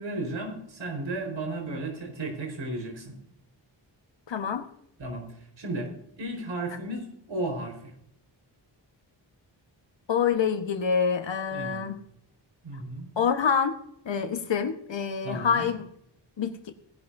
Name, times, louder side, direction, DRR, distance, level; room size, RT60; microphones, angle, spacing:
voice 1, 0.0-3.1 5.0-5.3 5.6-5.9 6.2-7.9 11.5-11.9 12.6-13.1 15.2-15.7, right 2 dB, 80° right, 3 dB, 4.7 m, -34 dB
voice 2, 4.3-4.7 10.1-12.0 13.2-13.8 14.0-15.9 16.4-16.6, left 6 dB, 75° left, 8 dB, 1.4 m, -26 dB
18.5 x 11.5 x 2.7 m, 0.71 s
wide cardioid pair, 105°, 45 cm